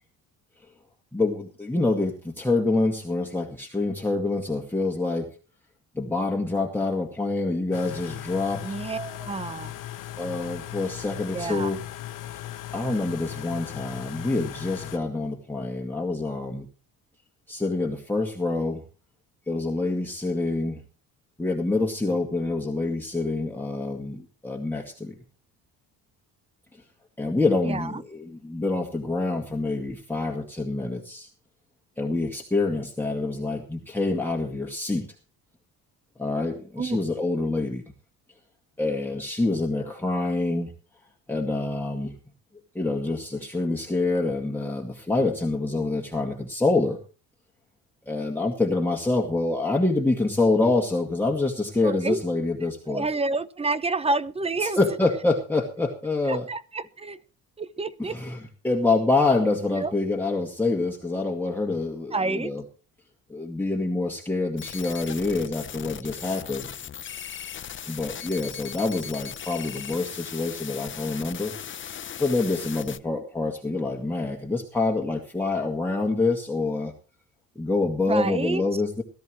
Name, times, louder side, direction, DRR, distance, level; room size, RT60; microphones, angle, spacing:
voice 1, 1.1-5.3 5.9-8.8 10.2-11.8 12.3-12.4 12.7-16.7 17.5-18.8 19.5-20.8 21.4-25.1 26.7-26.8 27.2-31.3 32.0-35.1 36.2-37.8 38.8-40.7 41.3-42.1 42.7-47.0 48.1-53.1 54.6-56.5 58.0-62.6 63.3-66.7 67.9-71.5 71.8-76.9 77.6-79.0, left 3 dB, 5° left, -1 dB, 2.1 m, -26 dB
sound 1, 7.7-15.0, left 13 dB, 65° left, 1.4 m, -38 dB
voice 2, 8.6-9.7 11.3-11.7 27.6-28.0 36.8-37.0 51.8-52.2 52.9-54.8 56.3-57.2 57.6-58.2 59.7-59.9 62.1-62.5 78.0-78.6, right 3 dB, 15° right, 16 dB, 0.8 m, -29 dB
sound 2, 64.6-73.0, left 9 dB, 35° left, 0.8 m, -38 dB
18.0 x 13.5 x 3.2 m, 0.36 s
cardioid pair, 115°, 35 cm